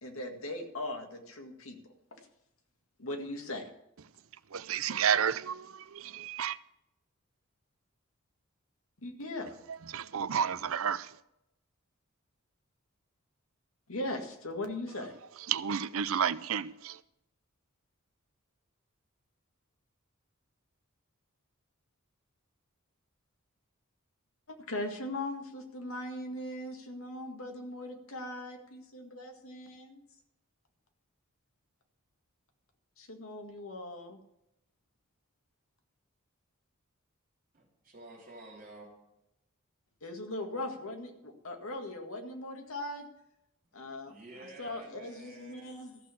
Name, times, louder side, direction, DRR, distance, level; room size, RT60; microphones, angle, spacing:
voice 1, 0.0-1.8 3.0-3.6 9.0-9.5 13.9-15.2 24.5-30.1 33.0-34.2 40.0-43.1 43.7-44.1 44.6-46.0, left 1 dB, 75° left, 2.0 m, -39 dB
voice 2, 4.5-6.6 9.9-11.1 15.5-17.0, right 8 dB, 70° right, 0.5 m, -31 dB
voice 3, 37.5-38.9 44.0-45.8, right 2 dB, 40° right, 3.7 m, -50 dB
14.0 x 6.3 x 8.5 m
head